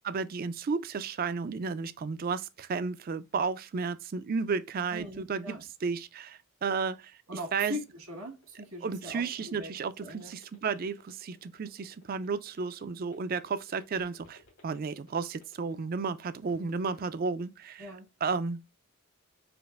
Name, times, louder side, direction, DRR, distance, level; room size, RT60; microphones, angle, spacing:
voice 1, 0.0-5.6 5.8-7.1 7.5-7.8 8.8-17.8 18.2-18.6, right 5 dB, 40° right, 0.3 m, -33 dB
voice 2, 4.9-5.7 7.3-9.7 10.0-10.3 17.8-18.1, left 1 dB, 80° right, 1.4 m, -41 dB
sound 1, 7.8-15.9 16.3-17.0, left 1 dB, 70° left, 2.2 m, -59 dB
5.0 x 2.5 x 2.4 m
head